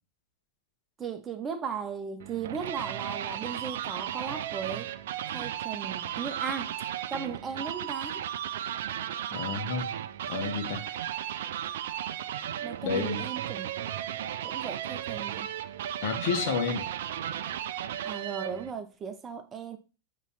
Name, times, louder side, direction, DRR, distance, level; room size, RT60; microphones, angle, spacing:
voice 1, 1.0-4.9 5.3-6.7 7.1-8.3 12.6-13.7 14.4-15.5 18.0-19.8, right 6 dB, 20° right, 0.8 m, -37 dB
sound 1, 2.2-18.7, right 10 dB, 55° right, 0.4 m, -35 dB
voice 2, 9.3-9.9 10.2-10.8 12.8-13.2 16.0-16.9, left 5 dB, 50° left, 1.3 m, -30 dB
8.1 x 3.2 x 4.2 m
figure-of-eight pair, 90°, 0 cm